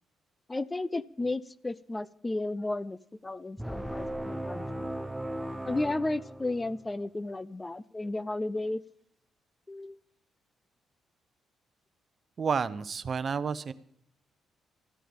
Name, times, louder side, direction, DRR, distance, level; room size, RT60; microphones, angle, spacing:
voice 1, 0.5-4.6 5.7-8.8 9.7-10.0, left 2 dB, 20° left, 18 dB, 0.5 m, -33 dB
sound 1, 3.6-6.9, right 1 dB, 5° right, 1.0 m, -37 dB
voice 2, 12.4-13.7, right 6 dB, 45° right, 15 dB, 0.8 m, -30 dB
14.0 x 9.1 x 8.7 m, 0.70 s
cardioid pair, 90°, 0 cm